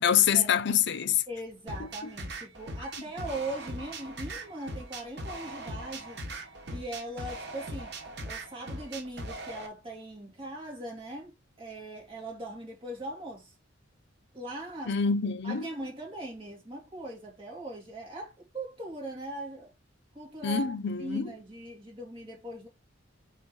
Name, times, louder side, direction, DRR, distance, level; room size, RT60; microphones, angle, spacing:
voice 1, 0.0-1.2 14.9-15.7 20.4-21.3, left 8 dB, 65° left, 0.6 m, -25 dB
voice 2, 1.3-6.2 6.7-7.9 8.2-13.5 14.3-15.0 15.4-19.7 20.1-20.7 21.0-22.7, right 1 dB, 30° right, 3.0 m, -40 dB
sound 1, 1.7-9.7, right 1 dB, 60° right, 1.6 m, -40 dB
4.7 x 4.4 x 5.4 m
head